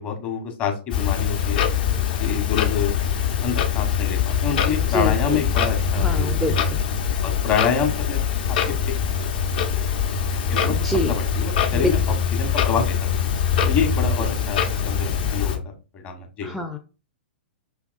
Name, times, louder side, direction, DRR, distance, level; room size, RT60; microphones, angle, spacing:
voice 1, 0.0-1.6 2.2-2.9 3.4-6.5 7.2-8.4 8.9-9.0 10.5-13.0 13.3-13.4 13.6-16.5, left 6 dB, 30° left, 4 dB, 1.2 m, -27 dB
Clock, 0.9-15.6, left 7 dB, 55° left, 1.0 m, -23 dB
voice 2, 4.9-5.4 6.0-6.8 10.6-11.2 11.7-11.9 16.4-16.8, left 1 dB, ahead, 6 dB, 0.5 m, -26 dB
5.9 x 3.5 x 2.5 m, 0.33 s
figure-of-eight pair, 105°, 6 cm